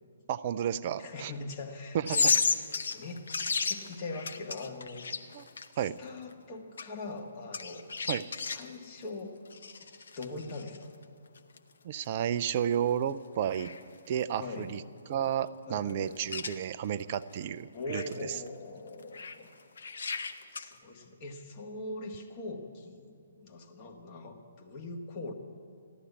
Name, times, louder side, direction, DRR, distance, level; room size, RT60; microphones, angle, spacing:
voice 1, 0.3-1.3 1.9-2.0 5.3-5.5 5.8-6.0 8.1-8.2 11.8-13.7 14.1-14.8 15.1-18.0, right 9 dB, 40° right, 13 dB, 0.5 m, -31 dB
voice 2, 1.0-2.6 2.9-5.0 5.7-7.8 8.3-9.4 9.8-9.9 10.2-10.9 14.4-14.7 15.7-16.2 17.7-19.5 20.5-25.3, left 2 dB, 35° left, 2 dB, 1.7 m, -42 dB
sound 1, 2.1-5.7 6.3-6.4 6.8-6.9 7.5-8.6 9.5-10.8 11.4-11.6 12.0-12.1 12.6-12.7 12.9-13.0 13.5-13.8 14.1-14.2 14.7-14.8 15.9-16.0 16.2-16.6 17.1-17.2 17.9-18.5 19.0-19.4 19.8-20.7, left 5 dB, 60° left, 0.8 m, -32 dB
14.5 x 11.5 x 8.3 m, 2.3 s
figure-of-eight pair, 130°, 0 cm